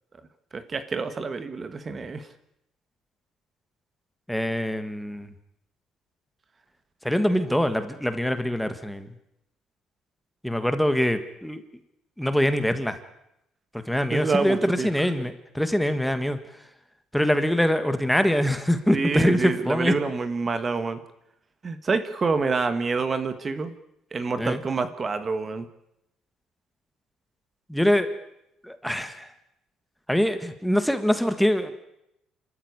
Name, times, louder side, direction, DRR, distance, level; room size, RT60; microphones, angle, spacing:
voice 1, 0.5-2.3 14.1-15.1 18.9-21.0 21.6-23.7 24.1-25.7, right 4 dB, 25° right, 11 dB, 1.5 m, -27 dB
voice 2, 4.3-5.3 7.0-9.1 10.4-11.6 12.2-13.0 13.9-16.4 17.1-19.9 24.4-24.6 27.7-28.1 28.6-29.3 30.1-31.7, equal, ahead, 10 dB, 1.6 m, -24 dB
27.5 x 13.5 x 9.6 m, 0.83 s
cardioid pair, 140°, 0 cm